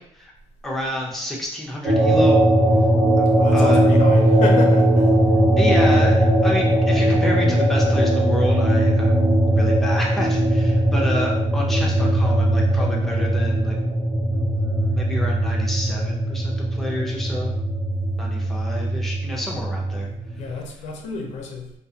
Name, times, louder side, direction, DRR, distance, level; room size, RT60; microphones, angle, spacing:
voice 1, 0.6-2.4 3.2-3.8 5.6-13.8 14.3-17.6 18.2-20.1, left 1 dB, ahead, -3 dB, 0.6 m, -29 dB
sound 1, 1.8-20.5, right 1 dB, 45° right, 1.1 m, -19 dB
voice 2, 3.3-5.1 20.4-21.7, left 3 dB, 80° left, 2 dB, 0.5 m, -30 dB
2.4 x 2.4 x 2.7 m, 0.76 s
cardioid pair, 105°, 12 cm